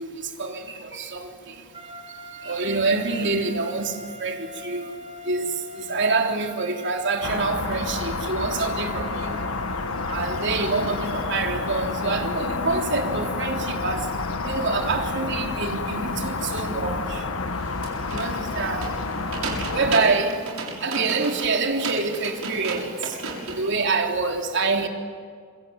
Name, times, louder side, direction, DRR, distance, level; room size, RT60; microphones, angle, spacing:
voice 1, 0.0-9.5 9.9-24.9, right 3 dB, 60° right, 3.4 m, -27 dB
sound 1, 1.7-14.6, left 1 dB, 30° right, 4.2 m, -42 dB
sound 2, 7.2-20.0, left 3 dB, 85° left, 1.6 m, -29 dB
sound 3, 17.5-23.7, right 3 dB, 85° right, 6.9 m, -34 dB
27.5 x 24.0 x 9.1 m
head